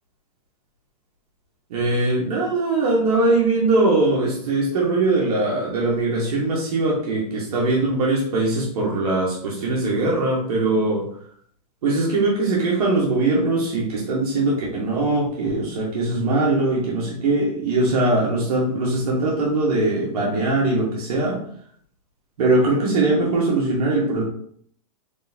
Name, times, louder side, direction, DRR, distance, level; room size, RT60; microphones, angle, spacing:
voice 1, 1.7-11.1 11.8-21.4 22.4-24.2, right 2 dB, 65° right, -4 dB, 1.3 m, -21 dB
3.7 x 3.6 x 2.7 m, 0.62 s
hypercardioid pair, 155°, 20 cm